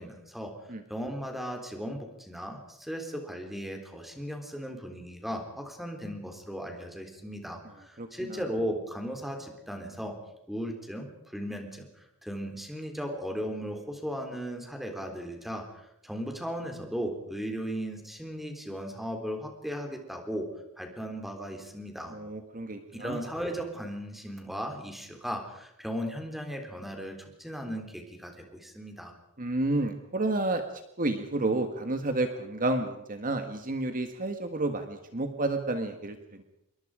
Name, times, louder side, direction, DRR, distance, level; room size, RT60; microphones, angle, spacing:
voice 1, 0.0-0.5 0.9-10.2 10.5-11.9 12.2-20.5 20.8-22.2 22.9-29.1, equal, ahead, 3 dB, 3.6 m, -36 dB
voice 2, 8.0-8.4 22.1-23.3 29.4-30.6 31.0-36.4, right 2 dB, 40° right, 7 dB, 1.6 m, -30 dB
27.0 x 23.0 x 5.0 m, 0.82 s
head